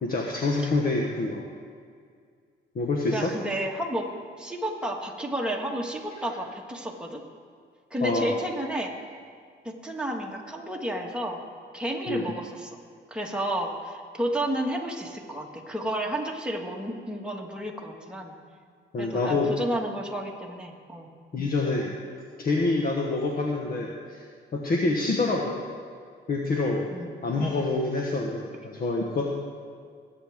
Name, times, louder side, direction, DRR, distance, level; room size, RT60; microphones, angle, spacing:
voice 1, 0.0-1.5 2.7-3.3 8.0-8.3 12.1-12.3 18.9-19.5 21.3-22.0 22.4-24.2 24.5-25.6 26.3-26.9 27.2-29.3, left 3 dB, 50° left, 0 dB, 1.3 m, -26 dB
voice 2, 3.1-4.1 4.4-7.2 7.9-8.9 9.7-11.4 11.7-12.8 13.1-18.3 19.0-21.1 26.9-27.1, right 1 dB, 5° right, -1 dB, 1.8 m, -31 dB
20.5 x 9.0 x 3.6 m, 2.1 s
cardioid pair, 90°, 20 cm